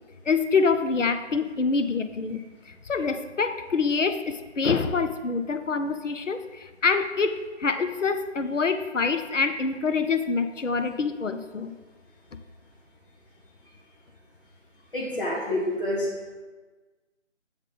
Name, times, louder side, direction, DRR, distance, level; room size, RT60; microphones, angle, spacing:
voice 1, 0.3-11.7, left 4 dB, 90° left, 9 dB, 0.7 m, -26 dB
voice 2, 14.9-16.3, left 1 dB, 45° left, -5 dB, 2.1 m, -28 dB
7.1 x 3.9 x 5.2 m, 1.3 s
figure-of-eight pair, 165°, 36 cm